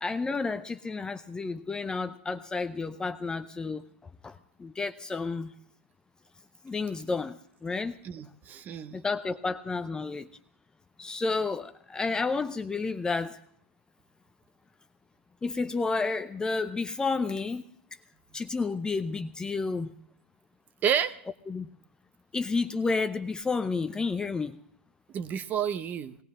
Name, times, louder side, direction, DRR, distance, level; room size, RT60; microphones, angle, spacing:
voice 1, 0.0-3.8 4.2-5.5 6.6-8.0 8.9-10.3 11.0-13.4 15.4-17.6 18.3-19.9 21.5-21.7 22.3-24.6, left 4 dB, 10° left, 10 dB, 0.6 m, -31 dB
voice 2, 8.0-9.0 20.8-21.2 25.1-26.2, right 8 dB, 30° right, 13 dB, 0.9 m, -30 dB
19.5 x 16.5 x 3.7 m, 0.65 s
hypercardioid pair, 120°, 6 cm